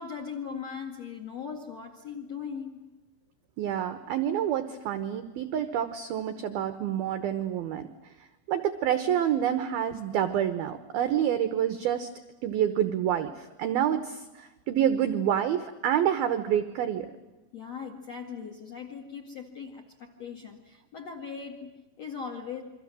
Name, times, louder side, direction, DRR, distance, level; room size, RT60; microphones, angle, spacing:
voice 1, 0.0-2.9 17.5-22.6, left 6 dB, 50° left, 6 dB, 2.0 m, -39 dB
voice 2, 3.6-7.9 8.5-12.1 12.4-17.1, right 10 dB, 90° right, 10 dB, 2.1 m, -28 dB
28.5 x 24.0 x 7.6 m, 1.1 s
omnidirectional pair, 5.9 m